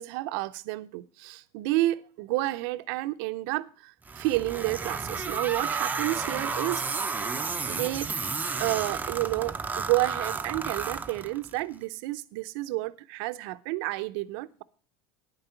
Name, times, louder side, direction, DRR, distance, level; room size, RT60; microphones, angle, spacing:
voice 1, 0.0-6.8 7.7-14.6, right 18 dB, 65° right, 0.7 m, -30 dB
sound 1, 4.1-11.6, right 4 dB, 15° right, 0.7 m, -32 dB
10.5 x 9.0 x 5.7 m
supercardioid pair, 120°, 13 cm